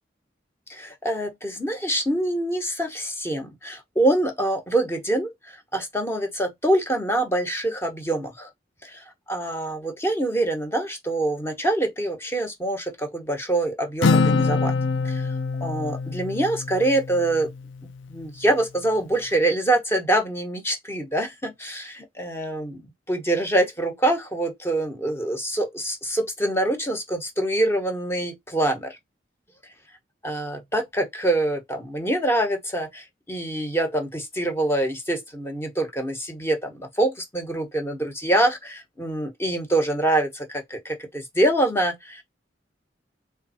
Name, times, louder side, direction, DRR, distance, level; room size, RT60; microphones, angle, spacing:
voice 1, 0.7-8.5 8.8-14.7 15.0-15.3 15.6-17.5 17.8-29.0 30.2-42.2, right 1 dB, 15° left, 0.9 m, -25 dB
Acoustic guitar, 14.0-17.7, left 4 dB, 90° left, 0.5 m, -24 dB
3.6 x 3.6 x 4.1 m
head